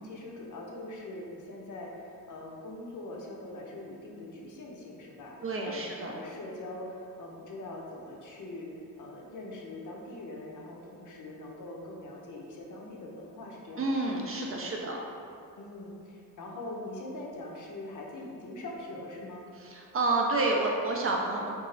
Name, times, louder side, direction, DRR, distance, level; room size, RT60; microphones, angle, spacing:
voice 1, 0.0-8.7 9.0-13.9 15.6-19.4, left 2 dB, 55° left, -2 dB, 0.6 m, -42 dB
voice 2, 5.4-6.2 13.8-15.0 19.6-21.5, right 2 dB, 40° right, -1 dB, 0.4 m, -29 dB
2.4 x 2.0 x 3.7 m, 2.5 s
cardioid pair, 80°, 37 cm